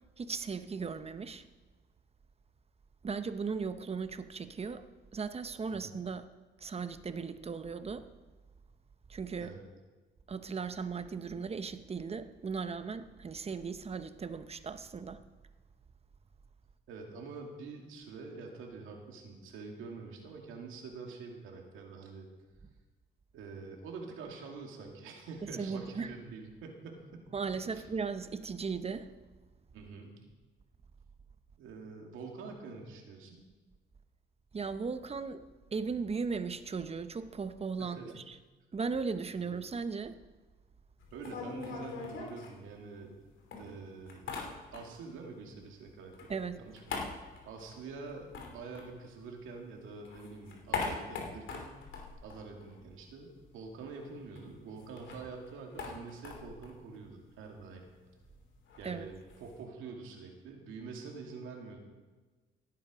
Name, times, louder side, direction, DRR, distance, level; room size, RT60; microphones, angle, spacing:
voice 1, 0.2-1.4 3.0-4.9 5.1-6.2 6.6-8.1 9.1-9.5 10.3-15.2 25.4-26.1 27.3-29.1 34.5-35.4 35.7-38.4 38.7-40.2 46.3-46.6 58.8-59.1, right 5 dB, 30° right, 11 dB, 0.9 m, -37 dB
voice 2, 16.9-22.3 23.3-27.2 27.7-27.8 29.7-30.2 31.6-33.4 37.8-38.1 39.4-39.5 41.1-43.1 43.6-44.2 44.7-47.1 47.5-51.7 52.2-57.8 58.8-61.8, right 4 dB, 90° right, 1 dB, 2.5 m, -46 dB
sound 1, 41.0-43.2 43.5-45.1 45.4-49.6 49.9-53.2 53.4-53.5 53.8-59.6, left 4 dB, 75° left, 2.8 m, -42 dB
16.0 x 9.4 x 5.1 m, 1.3 s
cardioid pair, 90°, 20 cm